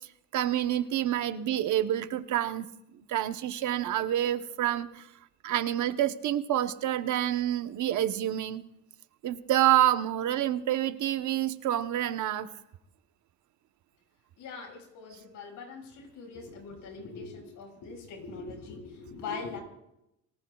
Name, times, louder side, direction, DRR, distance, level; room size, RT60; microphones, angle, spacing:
voice 1, 0.3-2.7 3.1-5.1 5.4-8.6 9.2-12.5, right 12 dB, 75° right, 10 dB, 1.1 m, -28 dB
voice 2, 14.4-19.6, left 4 dB, 85° left, 1 dB, 6.8 m, -42 dB
29.0 x 19.5 x 2.4 m, 0.83 s
cardioid pair, 90°, 30 cm